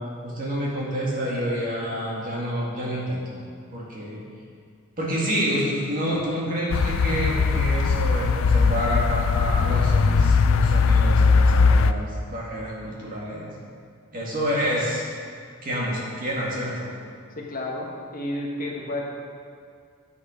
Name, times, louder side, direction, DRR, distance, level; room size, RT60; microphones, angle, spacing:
voice 1, 0.0-3.2 3.7-4.2 5.0-13.4 14.1-15.0 15.6-16.9, equal, 40° right, -5 dB, 2.1 m, -28 dB
sound 1, 6.7-11.9, left 4 dB, 65° left, 0.3 m, -19 dB
voice 2, 17.4-19.0, left 1 dB, 40° left, -1 dB, 1.1 m, -31 dB
9.4 x 6.7 x 5.1 m, 2.2 s
head